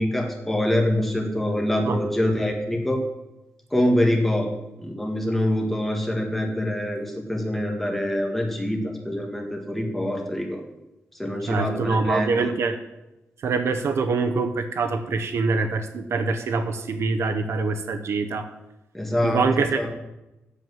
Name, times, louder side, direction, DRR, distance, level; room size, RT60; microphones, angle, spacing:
voice 1, 0.0-3.0 3.7-4.5 4.8-10.6 11.2-12.5 18.9-19.4 19.8-19.9, left 1 dB, 5° left, 1 dB, 1.8 m, -25 dB
voice 2, 11.5-12.8 13.4-18.5 19.2-20.0, right 4 dB, 70° right, 7 dB, 0.9 m, -24 dB
8.4 x 7.3 x 7.7 m, 0.96 s
wide cardioid pair, 160°, 5 cm